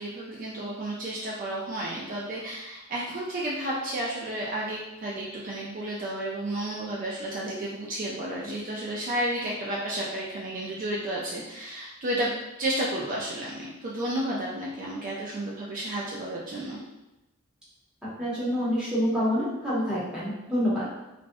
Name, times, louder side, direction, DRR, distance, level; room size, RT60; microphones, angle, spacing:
voice 1, 0.0-12.3 12.6-16.8, right 1 dB, 40° right, -5 dB, 0.3 m, -32 dB
voice 2, 18.2-20.9, equal, 5° right, -9 dB, 0.7 m, -27 dB
2.5 x 2.0 x 2.5 m, 0.99 s
head